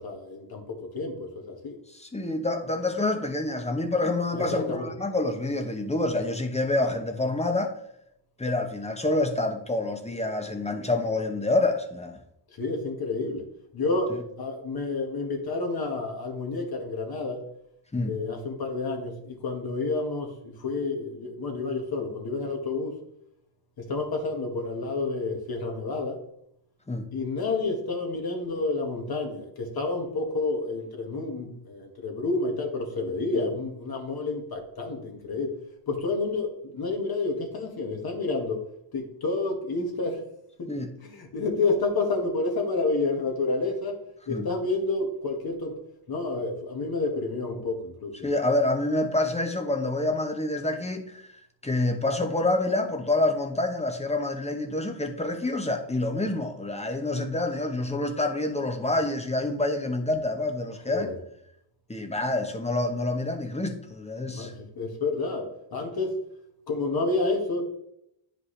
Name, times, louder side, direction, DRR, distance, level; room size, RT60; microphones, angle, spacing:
voice 1, 0.0-1.8 4.3-4.9 12.6-13.4 13.7-17.4 18.0-22.9 23.8-26.2 27.1-35.6 35.9-38.6 38.9-40.2 40.6-40.7 41.0-44.0 44.3-45.8 46.1-48.3 60.9-61.2 64.3-66.1 66.7-67.6, left 3 dB, 45° left, 1.8 m, -29 dB
voice 2, 1.9-7.8 8.4-12.2 14.1-14.2 17.9-18.2 26.9-27.1 33.3-33.4 40.7-40.9 44.3-44.5 48.2-51.3 51.6-61.1 61.9-64.5, left 2 dB, 15° left, 0.9 m, -27 dB
10.0 x 5.1 x 3.3 m
cardioid pair, 115°, 49 cm